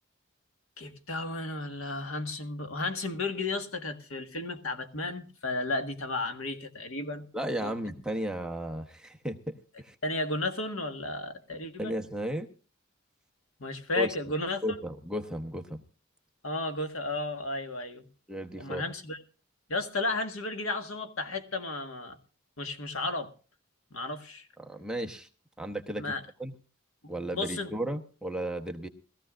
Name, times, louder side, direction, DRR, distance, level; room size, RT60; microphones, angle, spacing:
voice 1, 0.8-7.3 7.6-7.7 10.0-11.9 13.6-14.6 16.4-18.1 18.6-19.2 19.7-22.2 22.6-23.3 23.9-24.5 26.0-26.2 27.0-27.7, left 2 dB, 75° left, 1.7 m, -33 dB
voice 2, 7.3-9.9 11.8-12.5 13.9-14.1 14.6-15.8 18.3-18.8 24.6-25.3 25.6-26.0 26.4-26.5 27.1-28.9, right 1 dB, 5° right, 1.0 m, -34 dB
21.0 x 14.5 x 2.5 m
head